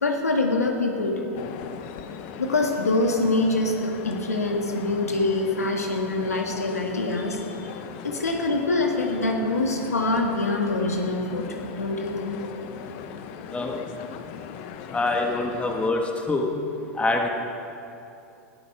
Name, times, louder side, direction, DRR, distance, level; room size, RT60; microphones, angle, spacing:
voice 1, 0.0-1.3 2.4-7.7 8.0-12.4, left 2 dB, 90° left, 2 dB, 1.8 m, -25 dB
sound 1, 1.3-15.9, left 7 dB, 50° left, 1.0 m, -39 dB
voice 2, 14.9-16.5 16.9-17.3, left 2 dB, 15° left, 2 dB, 1.9 m, -25 dB
20.5 x 12.5 x 4.7 m, 2.7 s
hypercardioid pair, 95°, 8 cm